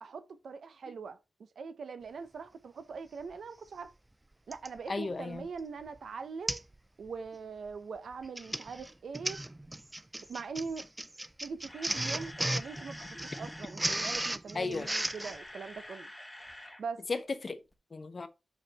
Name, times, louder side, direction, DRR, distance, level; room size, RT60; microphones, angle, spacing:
voice 1, 0.0-1.2 1.6-3.9 4.5-6.6 7.0-9.4 10.3-10.9 11.4-16.1 16.8-17.0, right 5 dB, 70° right, 0.8 m, -42 dB
Printer, 3.3-3.4 4.5-4.8 5.4-5.6 5.9-6.0 6.5-6.7 7.1-7.3 8.1-15.4, right 1 dB, 10° right, 0.3 m, -36 dB
voice 2, 4.9-5.5 14.5-14.9 17.1-17.6 17.9-18.3, left 3 dB, 35° left, 0.7 m, -34 dB
Camera, 11.4-13.8 14.5-16.8 17.1-17.2 17.7-17.8, left 1 dB, 10° left, 1.1 m, -48 dB
6.3 x 5.1 x 4.2 m
wide cardioid pair, 180°, 0 cm